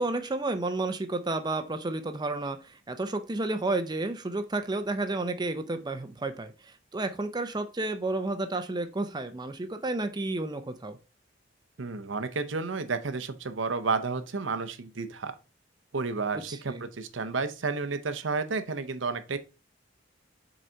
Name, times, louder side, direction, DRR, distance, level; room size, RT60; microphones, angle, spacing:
voice 1, 0.0-11.0 16.3-16.8, right 2 dB, 20° right, 0.6 m, -31 dB
voice 2, 11.8-15.3 15.9-19.4, right 4 dB, 75° right, 0.8 m, -31 dB
6.4 x 4.1 x 4.4 m
head